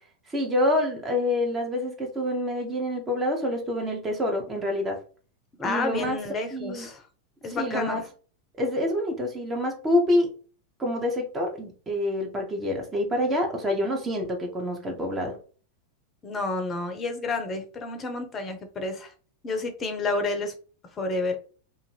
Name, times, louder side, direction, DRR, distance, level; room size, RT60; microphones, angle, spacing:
voice 1, 0.3-5.0 5.6-6.2 6.5-6.9 7.5-8.0 8.6-10.3 10.8-15.3, left 1 dB, 20° right, 1 dB, 0.8 m, -27 dB
voice 2, 5.6-7.0 7.4-8.0 16.2-19.1 19.4-20.5 21.0-21.4, left 3 dB, 25° left, 6 dB, 0.6 m, -30 dB
2.5 x 2.5 x 3.1 m, 0.39 s
figure-of-eight pair, 90°, 0 cm